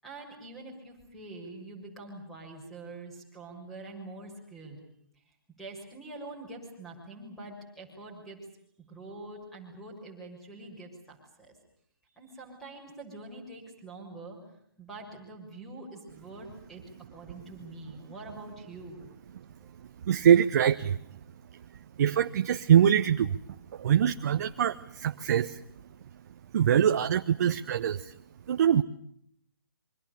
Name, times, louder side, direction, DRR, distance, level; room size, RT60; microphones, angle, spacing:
voice 1, 0.0-4.8 5.6-8.4 8.8-11.5 12.0-14.4 14.8-16.8 17.1-19.1 19.6-19.8, right 2 dB, ahead, 1 dB, 6.5 m, -45 dB
voice 2, 20.1-21.0 22.0-23.4 23.7-25.6 26.5-28.1 28.5-28.8, right 9 dB, 45° right, 9 dB, 1.0 m, -23 dB
28.0 x 24.5 x 6.8 m, 0.69 s
hypercardioid pair, 150°, 12 cm